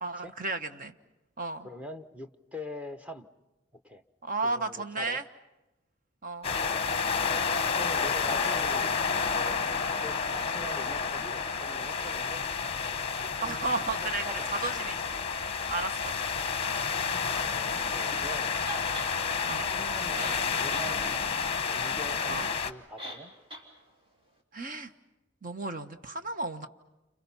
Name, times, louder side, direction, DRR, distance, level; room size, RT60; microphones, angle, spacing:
voice 1, 0.0-0.9 1.4-1.7 4.2-5.2 6.2-6.5 13.4-15.3 15.7-16.2 19.5-19.7 22.3-22.5 24.5-24.9 25.4-26.7, right 3 dB, 45° right, 8 dB, 1.3 m, -33 dB
voice 2, 1.6-3.3 3.7-4.0 4.4-5.2 6.4-6.8 7.7-9.6 9.9-12.5 13.2-14.5 14.9-15.1 15.7-15.9 17.3-18.5 19.6-21.3 21.7-23.3, left 1 dB, 5° right, 7 dB, 1.1 m, -43 dB
sound 1, 6.4-22.7, left 5 dB, 30° left, 1.0 m, -30 dB
sound 2, 18.6-19.1 19.9-20.0 20.2-20.9 21.3-21.4 23.0-23.2 23.5-23.6, equal, 30° right, 3.5 m, -40 dB
30.0 x 28.0 x 5.7 m, 0.97 s
head